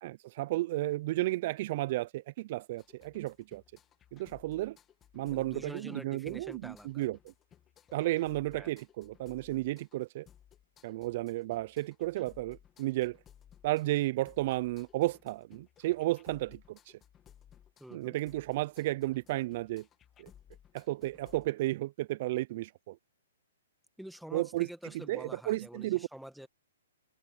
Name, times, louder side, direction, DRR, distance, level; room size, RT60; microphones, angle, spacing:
voice 1, 0.0-3.6 4.1-4.8 5.1-7.2 7.9-10.3 10.8-13.2 13.6-17.0 17.9-19.9 20.2-20.3 20.7-23.0 24.3-24.7 25.1-26.1, right 17 dB, 45° right, 0.4 m, -33 dB
sound 1, 2.8-21.5, left 10 dB, 20° left, 1.9 m, -60 dB
voice 2, 5.3-7.1 8.5-8.7 17.8-18.2 24.0-26.5, equal, ahead, 1.6 m, -47 dB
hypercardioid pair, 140°, 0 cm